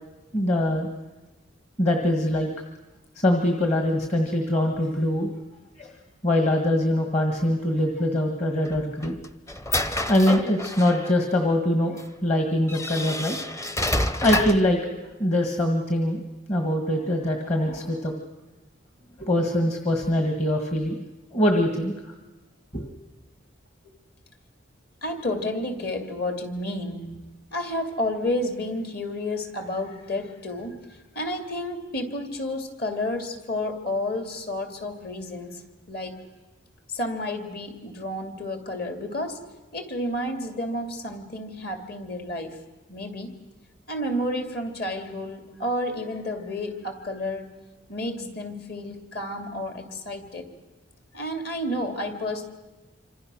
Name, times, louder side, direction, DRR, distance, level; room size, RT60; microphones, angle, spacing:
voice 1, 0.3-0.9 1.8-2.5 3.2-5.3 5.8-5.9 6.2-9.2 10.1-13.4 14.2-14.8 15.2-16.2 16.5-18.1 19.2-21.0 21.3-21.9 22.7-22.9, left 1 dB, 35° left, 3 dB, 1.7 m, -23 dB
sound 1, 8.7-11.1 12.0-12.1 12.7-14.7, left 1 dB, 15° left, 0.7 m, -28 dB
voice 2, 25.0-27.1 27.5-36.2 36.9-39.4 39.7-42.6 42.9-43.3 43.9-47.6 47.9-50.5 51.1-52.4, left 1 dB, 50° left, 5 dB, 2.7 m, -31 dB
26.5 x 25.5 x 6.4 m, 1.1 s
head